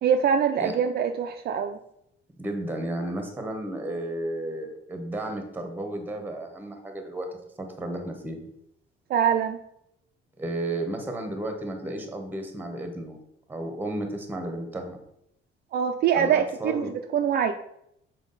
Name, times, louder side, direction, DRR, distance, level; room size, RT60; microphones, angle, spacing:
voice 1, 0.0-1.8 9.1-9.6 15.7-17.5, right 8 dB, 50° right, 5 dB, 0.4 m, -24 dB
voice 2, 2.4-7.3 7.6-8.4 10.4-13.2 13.5-15.0 16.1-16.9, right 1 dB, 10° right, 5 dB, 0.9 m, -33 dB
7.1 x 4.5 x 3.9 m, 0.77 s
cardioid pair, 175°, 21 cm